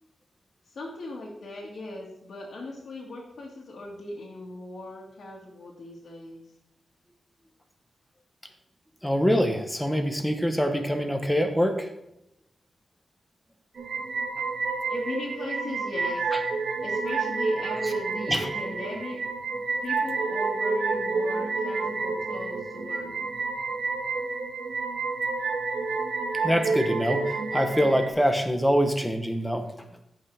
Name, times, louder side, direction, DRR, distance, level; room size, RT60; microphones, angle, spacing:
voice 1, 0.7-6.4 14.9-16.2 16.8-19.2 19.8-23.1, left 2 dB, 55° left, -5 dB, 2.0 m, -38 dB
voice 2, 9.0-11.9 16.3-16.4 18.3-18.5 26.4-29.7, equal, ahead, 6 dB, 0.9 m, -24 dB
sound 1, 13.8-28.1, right 4 dB, 90° right, 1.6 m, -29 dB
14.5 x 5.6 x 3.4 m, 0.84 s
wide cardioid pair, 180°, 0 cm